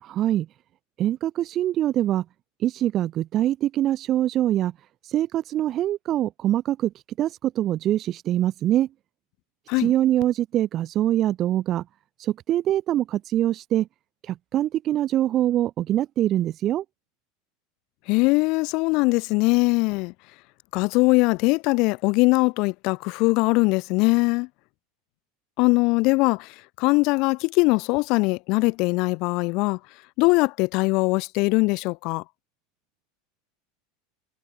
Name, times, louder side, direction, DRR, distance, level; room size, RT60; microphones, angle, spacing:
voice 1, 0.0-0.5 1.0-2.2 2.6-4.7 5.0-6.9 7.2-8.9 9.8-11.8 12.2-13.9 14.2-16.8, right 12 dB, 40° right, 0.3 m, -24 dB
voice 2, 18.1-20.1 20.7-24.5 25.6-29.8 30.2-32.2, left 26 dB, 55° left, 0.7 m, -21 dB
hypercardioid pair, 80°, 0 cm